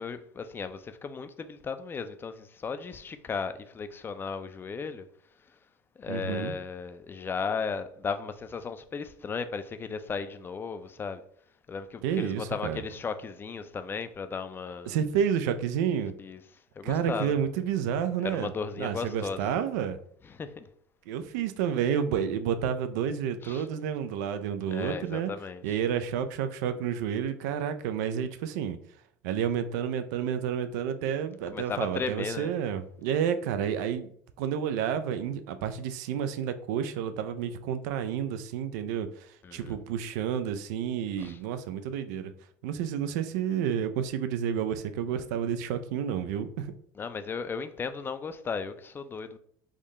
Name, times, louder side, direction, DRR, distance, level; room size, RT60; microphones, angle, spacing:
voice 1, 0.0-5.1 6.0-11.2 11.7-15.0 16.2-16.4 16.8-17.3 18.2-19.4 20.3-20.7 23.4-23.7 24.7-25.6 31.5-32.6 39.4-39.8 41.2-41.4 47.0-49.4, left 5 dB, 25° left, 0.3 m, -35 dB
voice 2, 6.1-6.5 12.0-12.8 14.9-16.1 16.8-20.0 21.1-25.3 25.6-28.8 29.2-34.1 34.4-42.3 42.6-46.7, right 8 dB, 80° right, 0.4 m, -30 dB
3.6 x 2.1 x 3.6 m
supercardioid pair, 90°, 9 cm